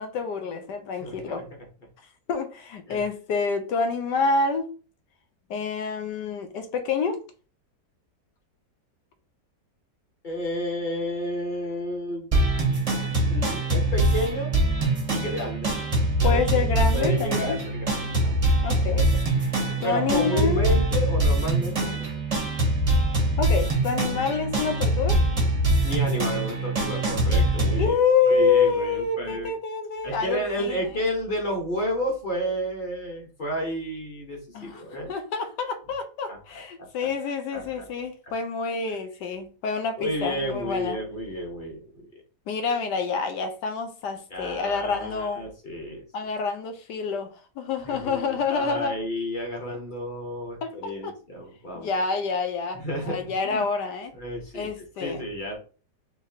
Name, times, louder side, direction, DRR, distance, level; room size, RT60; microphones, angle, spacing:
voice 1, 0.0-1.4 2.3-4.7 5.5-7.2 16.2-17.6 18.6-19.5 19.8-20.7 23.4-25.2 27.8-30.8 34.5-34.8 35.1-41.0 42.5-45.5 46.1-49.0 50.6-51.1 51.8-54.1 54.5-55.2, left 5 dB, 80° left, 1.3 m, -27 dB
voice 2, 1.0-1.4 2.9-3.1 10.2-12.3 13.2-14.5 15.1-15.8 16.2-16.4 16.9-18.4 19.8-21.9 25.8-28.0 28.3-29.5 30.0-35.2 36.3-36.4 37.0-37.1 37.5-37.9 40.0-42.0 44.3-46.0 47.8-51.9 52.7-53.6 54.1-55.6, equal, 30° left, 1.2 m, -31 dB
sound 1, 12.3-27.9, right 1 dB, 30° right, 0.7 m, -23 dB
4.6 x 3.0 x 2.8 m
omnidirectional pair, 1.9 m